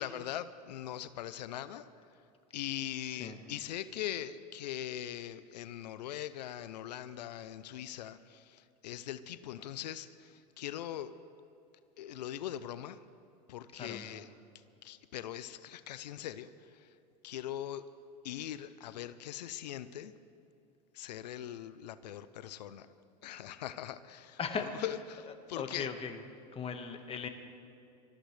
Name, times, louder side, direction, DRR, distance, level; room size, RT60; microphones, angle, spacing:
voice 1, 0.0-1.8 2.5-11.1 12.0-13.0 13.5-14.3 14.8-16.9 17.2-17.8 18.2-20.1 20.9-22.9 23.2-24.4 24.8-25.9, left 11 dB, 85° left, 14 dB, 0.6 m, -41 dB
voice 2, 13.7-14.0 24.4-24.7 25.6-26.2 26.5-27.3, left 6 dB, 25° left, 6 dB, 1.6 m, -38 dB
24.5 x 14.0 x 3.3 m, 2.7 s
hypercardioid pair, 105°, 21 cm